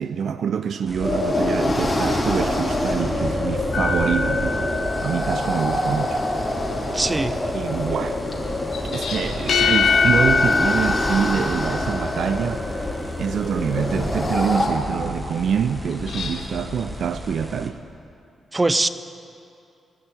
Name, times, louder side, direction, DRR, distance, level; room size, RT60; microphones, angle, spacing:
voice 1, 0.0-4.6 5.0-6.2 7.5-8.2 8.9-17.8, right 7 dB, 65° right, 0.4 m, -26 dB
sound 1, 0.9-17.7, left 1 dB, 10° right, 1.6 m, -35 dB
sound 2, 1.0-14.7, left 1 dB, 25° left, 3.3 m, -26 dB
sound 3, 3.7-5.7 8.7-12.4 15.9-16.4, left 5 dB, 70° left, 1.5 m, -23 dB
voice 2, 6.9-7.4 18.5-18.9, right 2 dB, 25° right, 0.6 m, -21 dB
17.0 x 6.2 x 9.5 m
hypercardioid pair, 40°, 0 cm